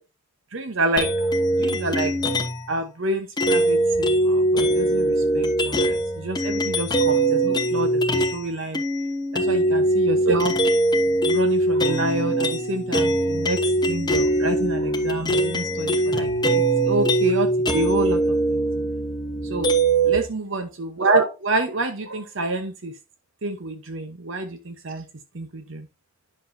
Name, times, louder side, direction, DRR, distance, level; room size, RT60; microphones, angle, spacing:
voice 1, 0.5-1.3 1.6-2.1 2.7-8.8 9.3-10.6 11.3-18.7 19.4-19.7 20.0-23.0 23.4-25.1 25.3-25.9, right 2 dB, 60° right, 0.9 m, -28 dB
sound 1, 1.0-2.7 3.4-8.4 8.7-20.2, right 1 dB, 20° left, 1.0 m, -22 dB
10.5 x 6.2 x 2.7 m
head